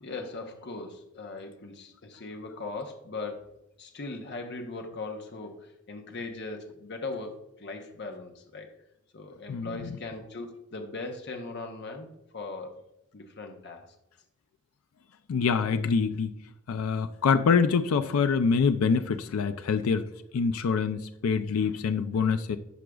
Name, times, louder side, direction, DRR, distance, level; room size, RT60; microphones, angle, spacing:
voice 1, 0.0-3.5 3.8-8.7 9.1-12.8 13.1-13.9, left 3 dB, 55° left, 4 dB, 0.8 m, -39 dB
voice 2, 9.5-9.9 15.3-16.3 16.7-20.1 20.3-22.6, left 5 dB, 80° left, 10 dB, 0.4 m, -25 dB
11.0 x 5.0 x 2.3 m, 0.85 s
head